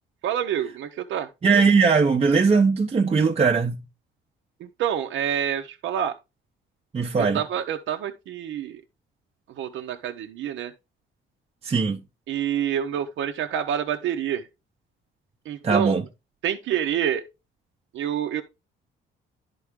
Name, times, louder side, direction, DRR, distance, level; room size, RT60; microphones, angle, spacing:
voice 1, 0.2-1.3 4.6-6.1 7.2-8.8 9.6-10.7 12.3-14.5 15.5-15.9 16.4-17.3 17.9-18.4, right 9 dB, 75° right, 0.7 m, -27 dB
voice 2, 1.4-3.8 6.9-7.4 11.6-12.0 15.6-16.0, right 5 dB, 30° right, 0.7 m, -20 dB
11.0 x 3.8 x 3.6 m
cardioid pair, 90°, 20 cm